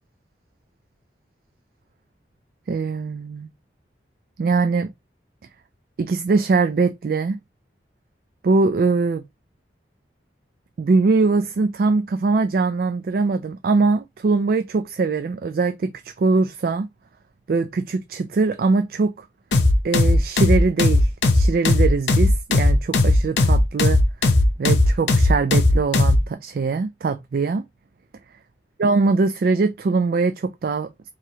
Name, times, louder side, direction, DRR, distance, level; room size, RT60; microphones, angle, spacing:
voice 1, 2.7-3.5 4.4-4.9 6.0-7.4 8.4-9.2 10.8-16.9 17.5-19.1 19.8-24.0 24.6-27.6 28.8-31.1, right 4 dB, 55° right, 0.3 m, -22 dB
sound 1, 19.5-26.2, left 2 dB, 85° left, 0.8 m, -16 dB
4.7 x 2.9 x 2.8 m
head